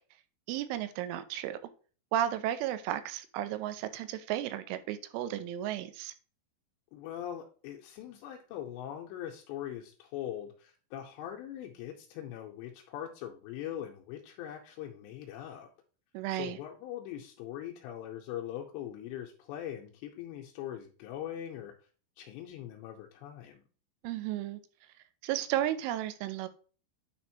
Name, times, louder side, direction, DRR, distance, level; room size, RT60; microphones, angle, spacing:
voice 1, 0.5-1.6 2.1-6.1 16.1-16.6 24.0-24.6 25.2-26.5, right 12 dB, 85° right, 11 dB, 3.1 m, -33 dB
voice 2, 6.9-15.7 16.3-21.7 22.2-23.7, left 11 dB, 85° left, 0 dB, 2.6 m, -41 dB
9.3 x 4.2 x 2.9 m, 0.39 s
omnidirectional pair, 5.6 m